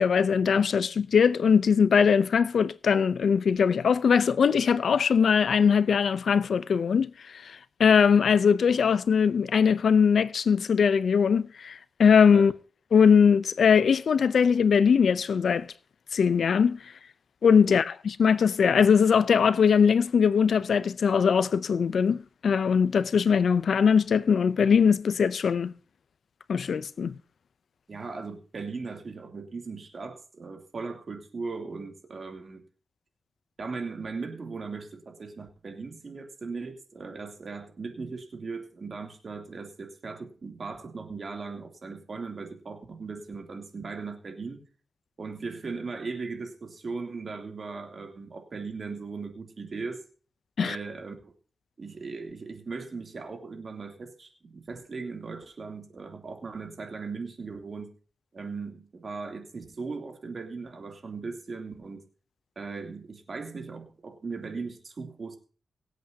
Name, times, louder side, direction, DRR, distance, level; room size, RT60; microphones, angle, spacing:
voice 1, 0.0-12.5 12.9-15.7 16.1-16.8 17.4-25.7 26.5-27.1 50.6-50.8, left 6 dB, 75° left, 0.6 m, -21 dB
voice 2, 27.9-32.6 33.6-44.6 45.2-50.0 50.6-51.3 51.8-57.9 58.3-62.0 62.5-65.4, right 4 dB, 50° right, 3.0 m, -38 dB
24.0 x 8.2 x 2.8 m
wide cardioid pair, 100°, 0 cm